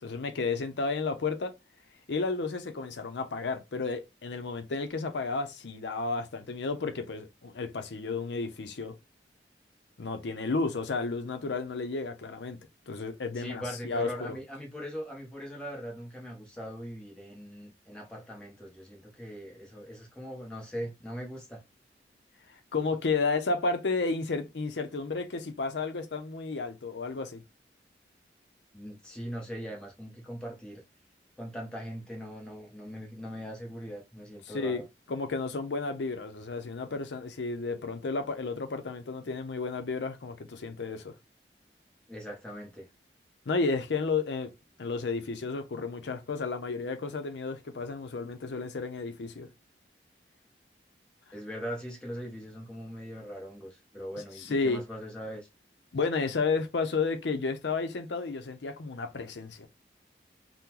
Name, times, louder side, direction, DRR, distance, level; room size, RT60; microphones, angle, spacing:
voice 1, 0.0-1.5 2.1-9.0 10.0-12.6 12.9-14.4 22.7-27.4 34.5-34.8 35.1-41.1 43.5-44.5 44.8-49.5 54.4-54.8 55.9-59.7, left 4 dB, 85° left, 0.6 m, -32 dB
voice 2, 13.3-21.6 28.7-30.8 31.4-34.8 42.1-42.9 51.3-55.5, equal, 5° left, 0.9 m, -40 dB
3.7 x 2.1 x 2.9 m
head